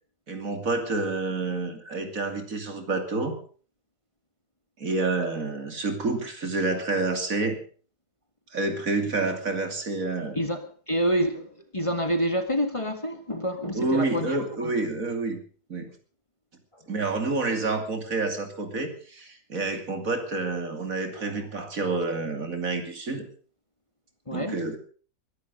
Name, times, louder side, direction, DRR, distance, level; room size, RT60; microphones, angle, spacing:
voice 1, 0.3-3.4 4.8-7.6 8.5-10.5 13.7-15.4 15.7-15.9 16.9-23.3 24.3-24.8, right 3 dB, 65° right, 3.1 m, -28 dB
voice 2, 10.4-14.8 21.1-21.5 24.3-24.6, equal, 20° left, 1.8 m, -28 dB
22.0 x 11.5 x 5.3 m
omnidirectional pair, 1.6 m